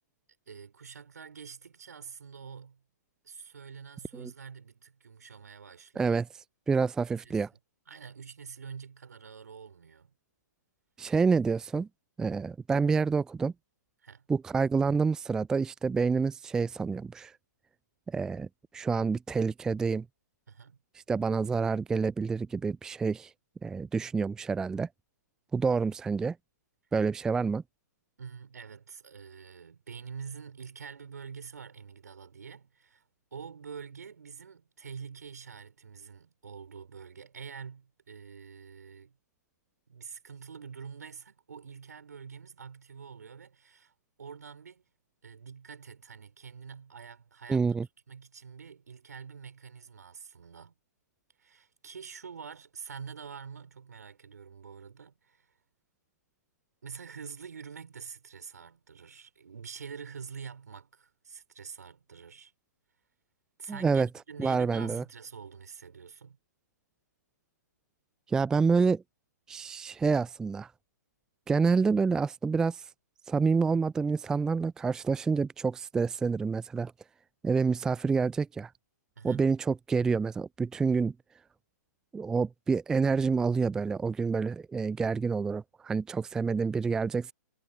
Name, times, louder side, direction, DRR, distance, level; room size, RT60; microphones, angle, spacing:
voice 1, 0.5-2.8 3.2-6.2 7.1-7.4 7.9-10.1 14.0-14.3 20.5-20.8 28.2-33.0 33.3-39.2 39.9-43.9 44.2-44.8 45.2-50.7 51.4-55.5 56.8-62.5 63.6-66.4 79.2-79.5, right 6 dB, 65° right, 5.1 m, -46 dB
voice 2, 6.7-7.5 11.0-11.9 12.2-13.5 14.3-17.3 18.1-18.5 18.7-20.1 21.1-23.3 23.6-24.9 25.5-26.4 26.9-27.6 47.5-47.9 63.7-64.1 64.4-65.0 68.3-69.0 69.5-70.7 71.5-72.9 73.3-76.9 77.4-78.7 79.2-81.1 82.1-87.3, right 5 dB, 5° right, 0.4 m, -28 dB
figure-of-eight pair, 120°, 10 cm